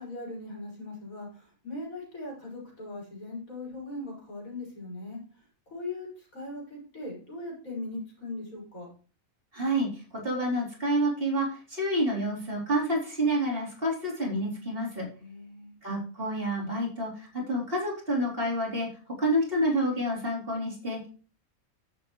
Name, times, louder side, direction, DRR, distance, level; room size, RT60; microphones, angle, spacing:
voice 1, 0.0-5.2 5.7-8.9 15.2-15.7, left 2 dB, 70° left, -3 dB, 6.1 m, -39 dB
voice 2, 9.5-15.1 15.8-18.9 19.2-21.1, right 1 dB, 40° right, -3 dB, 3.9 m, -28 dB
10.0 x 8.5 x 3.1 m, 0.37 s
omnidirectional pair, 1.5 m